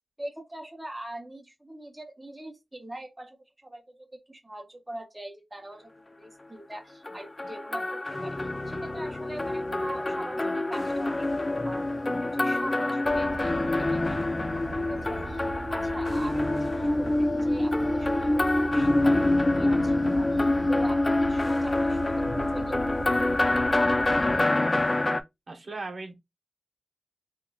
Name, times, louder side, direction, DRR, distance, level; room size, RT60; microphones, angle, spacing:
voice 1, 0.2-5.9 6.2-8.4 8.7-11.3 11.6-13.5 13.9-15.4 15.7-23.2, right 1 dB, 15° right, 0.7 m, -42 dB
sound 1, 7.0-25.2, left 2 dB, 25° left, 0.4 m, -26 dB
sound 2, 13.0-24.4, right 3 dB, 90° right, 0.4 m, -40 dB
voice 2, 25.5-26.1, right 3 dB, 55° right, 0.8 m, -37 dB
3.6 x 2.9 x 2.3 m
wide cardioid pair, 115°, 0 cm